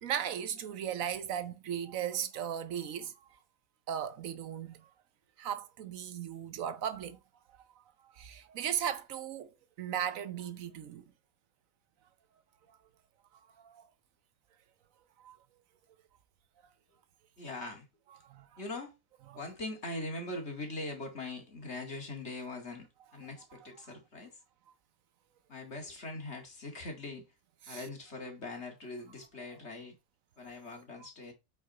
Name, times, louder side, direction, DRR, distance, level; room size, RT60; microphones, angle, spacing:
voice 1, 0.0-3.1 3.9-4.9 5.4-7.2 7.8-9.5 9.8-11.0 12.7-12.8 13.6-13.9 15.2-15.4 18.2-18.6 19.3-19.4 27.7-27.8, right 9 dB, 80° right, 1.2 m, -37 dB
voice 2, 17.4-17.9 18.6-19.0 19.3-22.9 23.1-24.4 25.5-27.2 27.7-30.0 30.4-31.3, left 2 dB, 55° left, 2.5 m, -41 dB
8.6 x 4.4 x 4.2 m
omnidirectional pair, 1.4 m